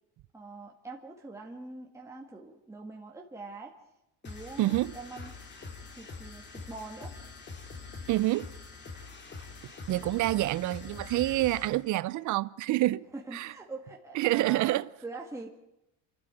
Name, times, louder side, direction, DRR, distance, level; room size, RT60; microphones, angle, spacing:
voice 1, 0.3-3.8 4.2-5.3 5.9-7.2 12.9-15.5, right 3 dB, 10° right, 1.9 m, -44 dB
sound 1, 4.2-11.8, left 4 dB, 30° left, 3.0 m, -44 dB
voice 2, 4.6-4.9 8.1-8.5 9.9-13.1 13.3-13.5 14.1-14.9, right 17 dB, 55° right, 0.7 m, -27 dB
28.0 x 12.5 x 9.1 m
cardioid pair, 140°, 37 cm